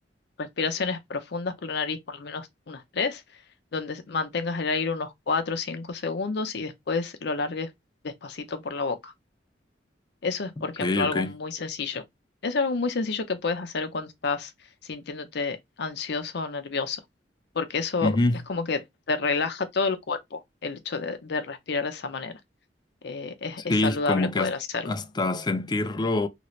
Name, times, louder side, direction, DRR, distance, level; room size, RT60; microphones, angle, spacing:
voice 1, 0.4-3.2 3.7-7.7 8.0-9.1 10.2-12.0 12.4-14.5 14.8-17.0 17.5-18.1 18.5-22.4 23.0-24.9, left 4 dB, 65° left, 0.6 m, -29 dB
voice 2, 10.8-11.4 18.0-18.4 23.7-24.6 24.9-26.3, left 2 dB, 25° left, 0.4 m, -25 dB
2.9 x 2.8 x 3.0 m
head